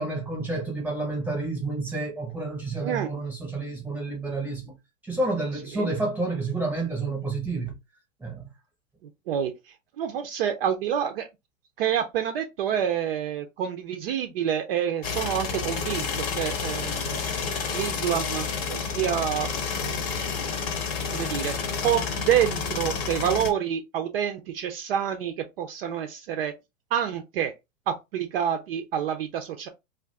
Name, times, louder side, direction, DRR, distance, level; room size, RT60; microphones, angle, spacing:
voice 1, 0.0-4.7 5.0-7.7 8.2-8.5, right 2 dB, 5° right, 1.0 m, -29 dB
voice 2, 10.0-11.3 11.8-17.2 17.7-19.5 21.1-21.5 21.8-26.5 26.9-27.5 27.9-29.7, right 9 dB, 45° right, 0.5 m, -27 dB
sound 1, 15.0-23.5, left 5 dB, 35° left, 0.8 m, -30 dB
2.5 x 2.5 x 3.3 m
hypercardioid pair, 130°, 42 cm